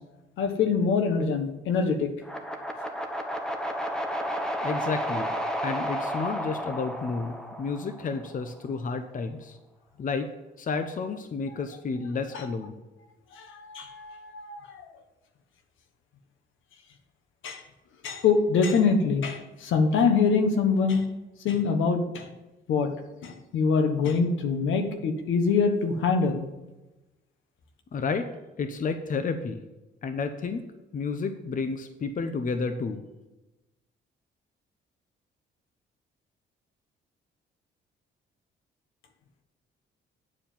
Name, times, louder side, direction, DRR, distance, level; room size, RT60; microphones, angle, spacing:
voice 1, 0.4-2.1 12.3-12.4 13.4-14.8 17.4-17.6 18.0-21.0 21.4-22.2 22.7-22.9 23.2-26.5, left 5 dB, 80° left, 6 dB, 1.3 m, -24 dB
sound 1, 2.2-8.4, equal, 5° left, 1.0 m, -32 dB
voice 2, 4.6-5.3 5.6-9.6 10.0-10.3 10.6-12.8 27.9-28.3 28.6-29.6 30.0-30.6 30.9-33.0, left 4 dB, 40° left, 8 dB, 0.8 m, -31 dB
9.7 x 4.6 x 7.2 m, 1.0 s
cardioid pair, 90°, 20 cm